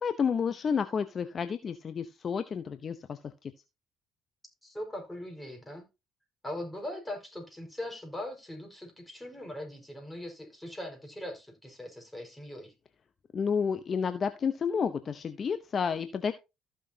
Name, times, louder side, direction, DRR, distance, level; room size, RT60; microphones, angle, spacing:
voice 1, 0.0-3.5 13.3-16.3, left 6 dB, 45° left, 0.8 m, -30 dB
voice 2, 4.6-5.8 6.4-12.7, left 1 dB, 10° left, 4.9 m, -40 dB
14.5 x 6.2 x 2.8 m
hypercardioid pair, 65°, 0 cm